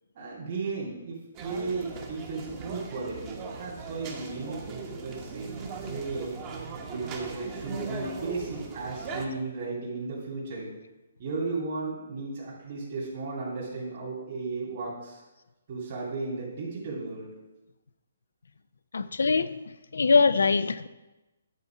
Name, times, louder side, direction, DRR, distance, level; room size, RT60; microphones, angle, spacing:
voice 1, 0.1-4.8 5.0-6.4 6.9-10.7 11.2-15.2 15.7-17.3, right 3 dB, 50° right, 2.7 m, -35 dB
sound 1, 1.3-9.2, right 4 dB, 30° right, 1.1 m, -39 dB
voice 2, 18.9-19.5 19.9-20.9, left 4 dB, 80° left, 0.4 m, -22 dB
9.4 x 4.2 x 5.9 m
hypercardioid pair, 145°, 0 cm